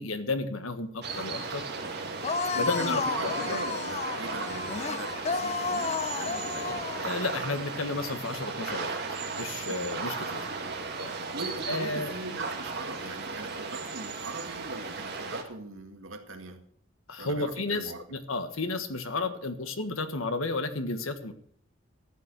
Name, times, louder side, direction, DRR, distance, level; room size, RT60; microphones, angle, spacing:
voice 1, 0.0-1.6 2.6-3.0 3.4-3.6 6.5-6.7 7.0-9.0 9.4-10.4 11.0-11.1 11.7-12.1 17.1-21.3, left 3 dB, 85° left, 9 dB, 1.5 m, -32 dB
sound 1, 1.0-15.4, right 4 dB, 50° right, 2.1 m, -36 dB
sound 2, 2.2-7.1, left 4 dB, 30° left, 0.6 m, -32 dB
voice 2, 2.5-6.6 9.7-9.9 11.2-16.6 17.2-18.0, right 2 dB, 75° right, 5 dB, 2.0 m, -40 dB
13.5 x 8.6 x 6.4 m, 0.65 s
head